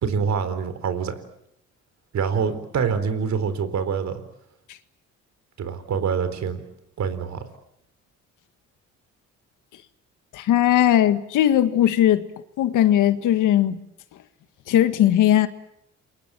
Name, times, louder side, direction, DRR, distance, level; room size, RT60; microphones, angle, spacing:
voice 1, 0.0-1.2 2.1-4.2 5.6-6.6 7.0-7.4, right 6 dB, 65° right, 4.1 m, -25 dB
voice 2, 10.3-12.3 12.6-13.8 14.7-15.5, left 11 dB, 85° left, 1.8 m, -18 dB
29.0 x 23.0 x 7.7 m
cardioid pair, 90°, 30 cm